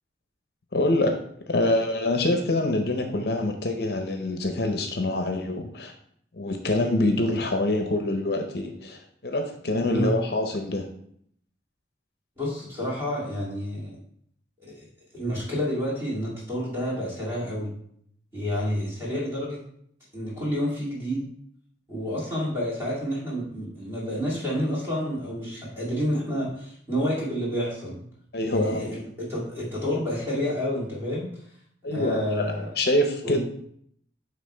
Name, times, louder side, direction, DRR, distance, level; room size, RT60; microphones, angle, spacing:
voice 1, 0.7-1.2 1.5-5.9 6.3-10.9 28.3-28.8 31.8-33.4, left 1 dB, 60° left, 5 dB, 0.6 m, -25 dB
voice 2, 12.4-14.0 14.8-14.9 15.1-17.7 18.3-19.6 20.1-21.2 21.9-28.0 28.5-29.0 29.3-31.3 31.9-32.7 33.2-33.4, equal, 15° right, -7 dB, 2.7 m, -29 dB
9.1 x 3.4 x 3.3 m, 0.66 s
head